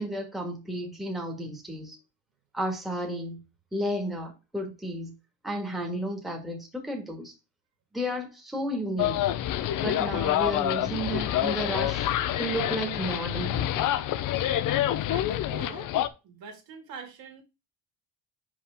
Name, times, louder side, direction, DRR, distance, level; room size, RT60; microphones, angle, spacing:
voice 1, 0.0-2.0 2.5-3.4 3.7-5.1 5.4-7.3 7.9-9.2 9.8-12.1 12.4-13.9, right 1 dB, ahead, 1.6 m, -32 dB
sound 1, 9.0-16.1, left 12 dB, 50° left, 0.6 m, -27 dB
voice 2, 15.1-15.9 16.2-17.4, right 6 dB, 60° right, 2.2 m, -44 dB
5.8 x 5.0 x 3.5 m
cardioid pair, 135°, 40 cm